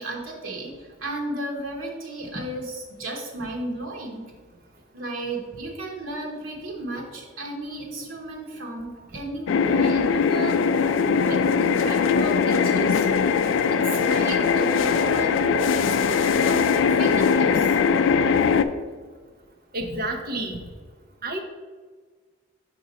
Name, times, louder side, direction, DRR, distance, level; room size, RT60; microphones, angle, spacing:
voice 1, 0.0-4.3 4.9-10.8 11.1-13.0 13.7-17.8, right 2 dB, 90° right, -2 dB, 1.1 m, -34 dB
sound 1, 9.5-18.6, left 6 dB, 75° left, 0.3 m, -21 dB
voice 2, 19.7-20.6 21.2-21.4, right 1 dB, 45° right, 2 dB, 0.8 m, -29 dB
5.2 x 4.6 x 4.1 m, 1.5 s
head